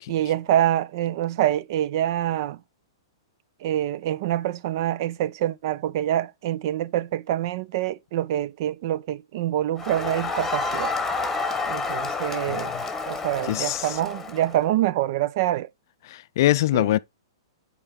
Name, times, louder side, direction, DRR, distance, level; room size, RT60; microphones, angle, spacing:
voice 1, 0.1-2.6 3.6-10.9 11.7-12.7 13.1-15.7 16.7-16.9, right 12 dB, 50° right, 0.5 m, -25 dB
Crowd, 9.8-14.6, left 3 dB, 10° left, 1.5 m, -29 dB
voice 2, 12.5-12.8 13.5-14.0 16.1-17.0, left 15 dB, 55° left, 0.4 m, -23 dB
8.8 x 4.7 x 3.6 m
hypercardioid pair, 115°, 2 cm